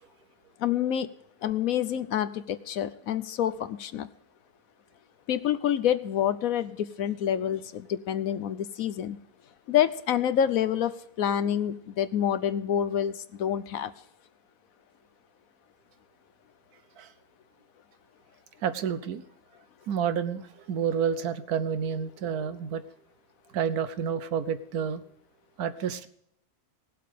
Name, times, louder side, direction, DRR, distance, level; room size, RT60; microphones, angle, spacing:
voice 1, 0.6-1.1 1.4-4.1 5.3-9.2 9.7-13.9, left 10 dB, 70° left, 13 dB, 1.1 m, -27 dB
voice 2, 18.6-19.2 19.9-22.8 23.5-25.0 25.6-26.1, right 7 dB, 80° right, 13 dB, 1.3 m, -29 dB
18.0 x 7.7 x 5.0 m, 0.74 s
omnidirectional pair, 1.6 m